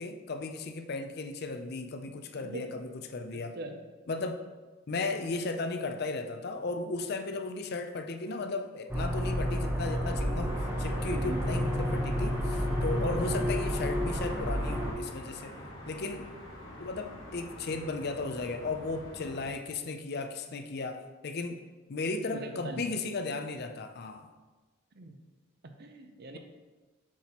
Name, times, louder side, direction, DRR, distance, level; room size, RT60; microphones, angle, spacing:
voice 1, 0.0-3.6 4.1-4.4 4.9-15.5 15.9-16.3 16.8-21.6 21.9-24.3, left 3 dB, 50° left, 6 dB, 0.5 m, -35 dB
voice 2, 2.3-2.8 3.3-3.8 11.2-11.4 13.2-13.4 22.3-22.9 24.9-25.2 25.6-26.4, right 2 dB, 50° right, 6 dB, 0.6 m, -42 dB
sound 1, 8.9-14.9, equal, 10° right, 0.8 m, -30 dB
sound 2, 10.5-19.5, left 1 dB, 70° left, 1.6 m, -45 dB
7.2 x 5.9 x 2.9 m, 1.2 s
head